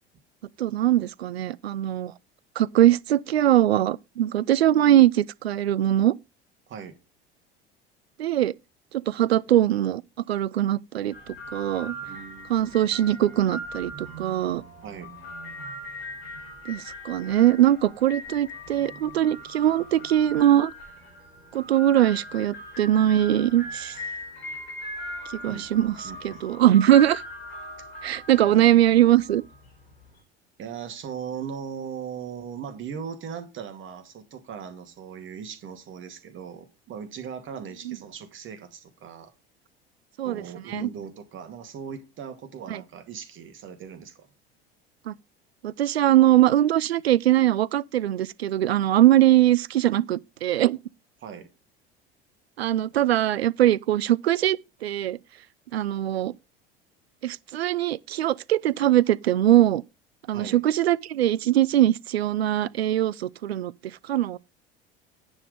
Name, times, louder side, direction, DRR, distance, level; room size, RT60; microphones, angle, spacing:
voice 1, 0.6-2.1 2.6-6.1 8.2-8.5 8.9-10.0 10.3-12.0 12.5-14.6 16.7-20.7 21.5-24.0 25.4-26.0 26.2-27.2 28.0-29.4 37.9-38.0 40.2-40.4 40.7-40.9 42.7-42.8 45.1-45.2 45.6-50.8 52.6-55.2 55.7-56.3 57.2-59.8 60.3-63.7 64.1-64.4, right 12 dB, 80° right, 0.5 m, -21 dB
sound 1, 11.1-30.2, equal, 75° left, 4.6 m, -40 dB
voice 2, 12.0-12.6 14.8-15.1 25.5-26.4 28.5-29.0 30.6-39.3 40.2-44.3 51.2-51.5 60.3-60.6, right 7 dB, 40° right, 2.4 m, -39 dB
9.8 x 6.3 x 5.1 m
figure-of-eight pair, 70°, 31 cm